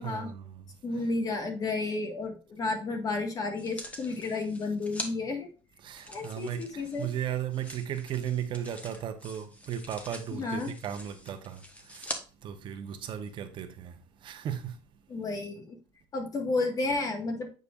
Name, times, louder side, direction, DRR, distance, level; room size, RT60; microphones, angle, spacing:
voice 1, 0.0-0.8 5.8-14.8, right 9 dB, 50° right, 1.0 m, -36 dB
voice 2, 0.8-5.5 6.1-7.1 10.3-10.7 15.1-15.8 16.1-17.5, left 3 dB, 35° left, 1.8 m, -32 dB
sound 1, 3.6-5.1 5.9-12.2 12.9-13.0, left 1 dB, 15° left, 1.3 m, -44 dB
8.3 x 5.3 x 2.5 m
cardioid pair, 130°, 10 cm